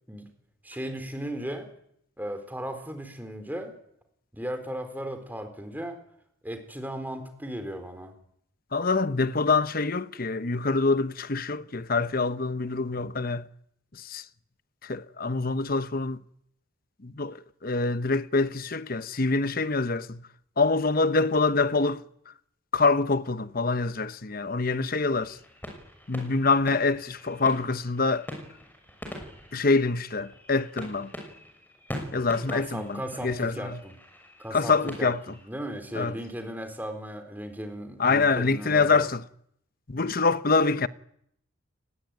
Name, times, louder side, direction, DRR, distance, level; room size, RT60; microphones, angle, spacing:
voice 1, 0.6-1.7 2.2-3.7 4.3-6.0 6.4-8.1 32.5-33.9 34.4-39.1, right 1 dB, 10° right, 4.3 m, -36 dB
voice 2, 8.7-13.5 14.0-14.2 14.8-16.2 17.0-20.2 20.6-22.0 22.7-25.4 26.1-28.3 29.5-31.1 32.1-33.8 34.5-35.2 36.0-36.1 38.0-39.2 39.9-40.9, left 3 dB, 45° left, 1.0 m, -25 dB
sound 1, 25.1-35.5, equal, 10° left, 6.4 m, -43 dB
30.0 x 20.0 x 9.3 m
head